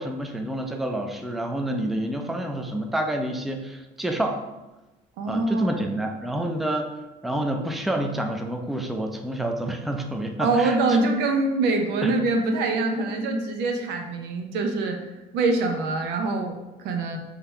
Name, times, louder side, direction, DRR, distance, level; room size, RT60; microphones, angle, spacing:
voice 1, 0.0-4.4 5.3-7.0 7.2-11.0 12.0-12.1, right 1 dB, ahead, 4 dB, 0.4 m, -28 dB
voice 2, 5.2-5.7 10.4-15.0 15.3-17.2, right 3 dB, 90° right, 4 dB, 0.6 m, -24 dB
3.7 x 2.8 x 4.3 m, 1.1 s
cardioid pair, 110°, 17 cm